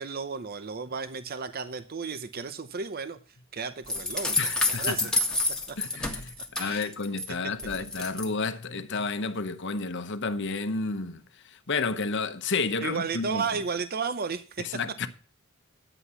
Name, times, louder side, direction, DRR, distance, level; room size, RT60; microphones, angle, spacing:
voice 1, 0.0-3.2 3.5-4.5 4.8-5.1 5.7-5.8 6.1-6.2 6.6-6.9 12.8-14.7, right 5 dB, 45° right, 0.7 m, -33 dB
sound 1, 3.9-7.2 7.6-8.3, left 2 dB, 5° left, 1.6 m, -28 dB
voice 2, 4.4-5.1 5.8-11.2 11.5-13.4 14.6-15.1, left 4 dB, 60° left, 1.0 m, -31 dB
10.0 x 8.0 x 5.6 m
head